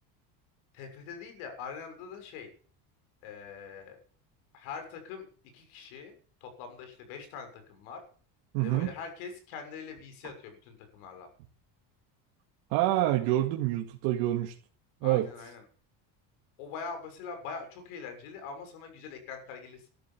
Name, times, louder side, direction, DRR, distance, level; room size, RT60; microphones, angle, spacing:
voice 1, 0.7-2.5 3.2-4.0 4.5-5.2 5.5-6.1 6.4-8.0 8.6-11.3 15.0-15.6 16.6-19.9, left 5 dB, 90° left, 6 dB, 6.8 m, -43 dB
voice 2, 8.5-8.9 12.7-14.5 15.0-15.3, right 14 dB, 80° right, 2 dB, 2.3 m, -27 dB
13.0 x 12.0 x 7.4 m, 0.43 s
cardioid pair, 130°, 42 cm